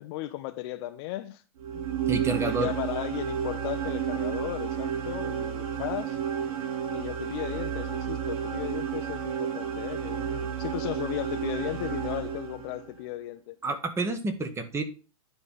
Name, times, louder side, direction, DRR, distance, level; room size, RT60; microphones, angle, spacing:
voice 1, 0.0-1.4 1.7-2.1 2.4-6.2 6.9-13.6, left 16 dB, 45° left, 0.6 m, -36 dB
sound 1, 1.6-12.9, right 8 dB, 70° right, 1.5 m, -31 dB
voice 2, 2.1-2.7 13.6-14.8, right 3 dB, 15° right, 1.1 m, -29 dB
9.9 x 3.4 x 5.4 m
hypercardioid pair, 135°, 19 cm